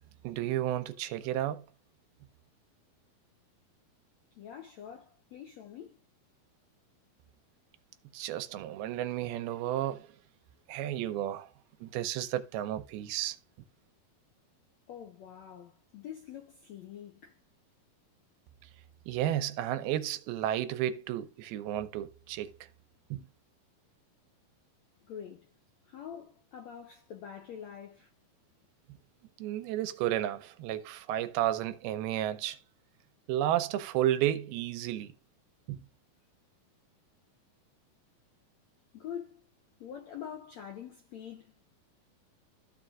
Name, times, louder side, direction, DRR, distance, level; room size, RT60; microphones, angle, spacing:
voice 1, 0.2-1.6 8.1-10.1 10.7-11.5 11.8-13.4 19.1-22.7 23.1-23.3 29.4-32.6 33.3-35.1 35.7-35.8, right 12 dB, 85° right, 2.5 m, -32 dB
voice 2, 4.4-5.9 14.9-17.3 25.1-25.5 25.9-28.1 38.9-39.4 39.8-41.5, left 9 dB, 80° left, 1.5 m, -45 dB
14.5 x 4.9 x 2.4 m
omnidirectional pair, 4.5 m